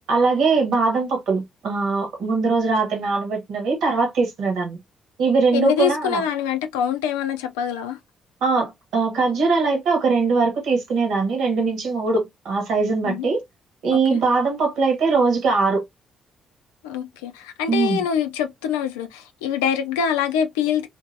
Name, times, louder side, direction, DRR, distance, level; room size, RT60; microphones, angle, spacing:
voice 1, 0.1-4.8 5.2-6.2 8.4-13.4 13.8-15.8 17.7-18.0, right 4 dB, 70° right, 1.3 m, -21 dB
voice 2, 5.5-8.0 13.0-13.3 13.9-14.2 16.8-20.9, left 8 dB, 85° left, 0.4 m, -24 dB
2.8 x 2.6 x 2.6 m
hypercardioid pair, 45°, 0 cm